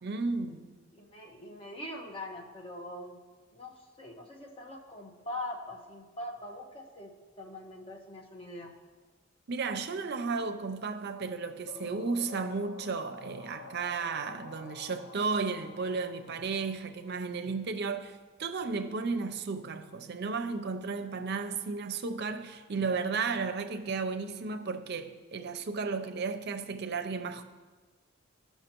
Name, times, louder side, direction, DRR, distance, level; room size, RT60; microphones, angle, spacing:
voice 1, 0.0-0.7 9.5-27.4, right 4 dB, 55° right, 0.5 m, -34 dB
voice 2, 0.9-3.2 3.5-7.1 7.4-8.8, left 1 dB, 30° left, 1.1 m, -42 dB
sound 1, 11.7-17.4, left 4 dB, 65° left, 0.6 m, -48 dB
14.5 x 5.7 x 2.9 m
head